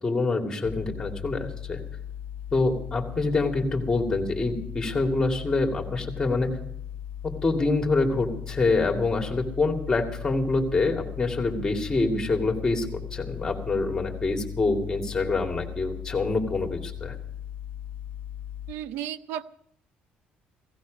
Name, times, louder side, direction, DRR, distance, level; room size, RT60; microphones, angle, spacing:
voice 1, 0.0-1.8 2.5-6.6 7.2-17.1, left 3 dB, 15° left, 2 dB, 2.4 m, -26 dB
sound 1, 0.6-18.7, left 10 dB, 40° left, 1.2 m, -38 dB
voice 2, 18.7-19.4, right 11 dB, 80° right, 15 dB, 0.6 m, -33 dB
17.0 x 16.0 x 5.2 m, 0.69 s
cardioid pair, 155°, 3 cm